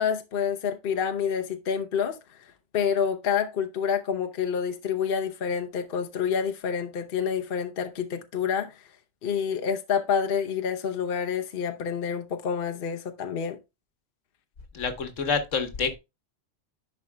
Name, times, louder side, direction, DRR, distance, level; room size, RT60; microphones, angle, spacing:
voice 1, 0.0-2.2 2.7-8.8 9.2-13.6, left 7 dB, 50° left, 0.9 m, -28 dB
voice 2, 14.7-16.0, left 5 dB, 70° left, 1.5 m, -27 dB
10.5 x 4.8 x 2.3 m
omnidirectional pair, 1.3 m